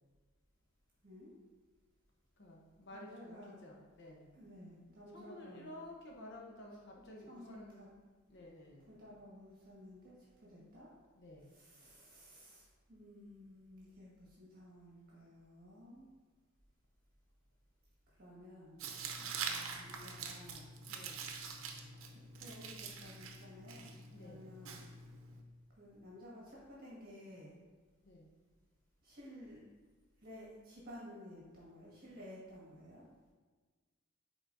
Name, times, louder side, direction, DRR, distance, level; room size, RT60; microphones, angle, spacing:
voice 1, 2.4-4.3 5.1-7.9 8.3-8.9 11.2-11.5 20.9-21.3 24.1-24.5 28.0-28.3, left 1 dB, 60° left, -1 dB, 0.9 m, -52 dB
voice 2, 2.9-3.6 4.3-5.7 7.3-7.9 8.9-10.9 11.5-16.1 18.2-18.8 19.2-20.7 22.1-24.8 25.8-27.6 29.0-29.6 30.2-33.0, equal, 45° right, -6 dB, 1.6 m, -54 dB
Tearing, 18.8-25.4, right 5 dB, 85° right, 0.7 m, -45 dB
9.1 x 4.0 x 2.6 m, 1.4 s
head